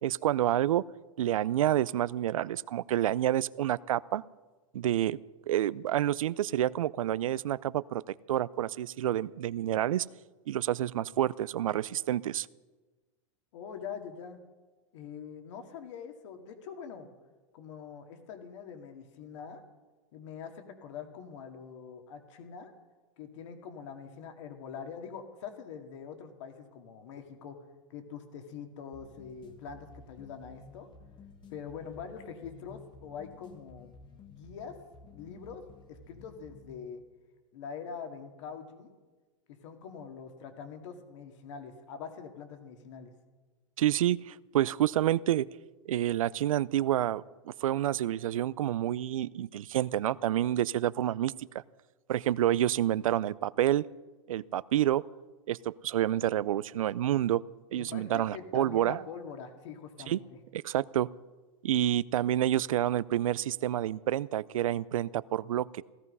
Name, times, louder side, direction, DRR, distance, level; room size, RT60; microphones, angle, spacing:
voice 1, 0.0-0.8 1.2-4.2 4.7-5.2 5.5-8.0 8.3-10.1 10.5-12.5 43.8-45.5 45.9-51.6 52.1-53.8 54.3-55.0 55.5-57.4 57.7-59.0 60.1-60.2 60.5-61.1 61.6-65.8, right 12 dB, 85° right, 20 dB, 0.5 m, -28 dB
voice 2, 13.5-14.4 14.9-17.1 17.5-19.6 20.1-22.7 23.2-27.6 27.9-30.9 31.5-33.9 34.3-34.8 35.1-35.6 35.9-37.0 37.5-39.0 39.5-43.1 57.7-60.2, left 6 dB, 60° left, 5 dB, 2.1 m, -44 dB
sound 1, 28.9-37.0, left 4 dB, 25° left, 1.4 m, -53 dB
16.5 x 13.5 x 5.5 m, 1.3 s
hypercardioid pair, 130°, 17 cm